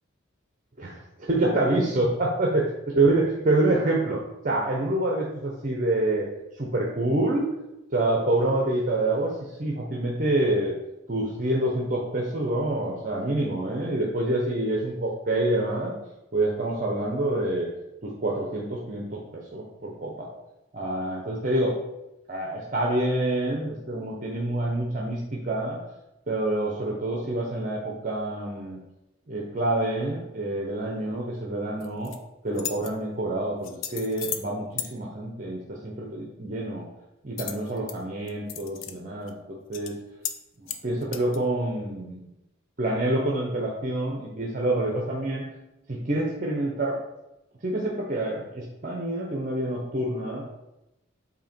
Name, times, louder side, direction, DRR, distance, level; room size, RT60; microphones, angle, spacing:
voice 1, 0.8-2.7 2.9-6.3 6.6-7.6 7.9-10.7 11.1-16.0 16.3-17.7 18.0-20.3 20.7-21.8 22.3-25.8 26.3-28.8 29.3-32.1 32.4-36.9 37.2-40.0 40.8-42.2 42.8-45.4 45.9-47.0 47.6-50.4, right 1 dB, 40° right, -2 dB, 0.7 m, -27 dB
sound 1, 31.8-32.2 32.5-32.9 33.6-34.5 34.8-34.9 37.4-38.0 38.3-38.9 39.3-39.4 39.7-39.9 40.2-40.4 40.7-41.4, left 9 dB, 75° left, 0.5 m, -34 dB
8.0 x 2.8 x 4.4 m, 0.92 s
head